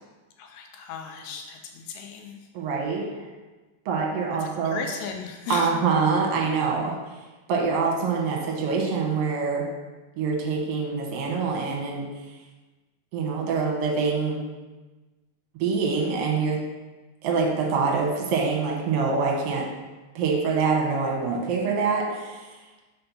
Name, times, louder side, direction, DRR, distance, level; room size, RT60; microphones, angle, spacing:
voice 1, 0.4-2.4 4.4-5.7, left 6 dB, 80° left, 3 dB, 1.8 m, -36 dB
voice 2, 2.5-3.3 3.9-4.9 5.5-7.0 7.5-9.7 10.2-12.1 13.1-14.4 15.6-16.6 17.2-19.7 20.2-22.5, right 5 dB, 65° right, -1 dB, 1.7 m, -25 dB
4.3 x 4.2 x 5.5 m, 1.2 s
omnidirectional pair, 3.7 m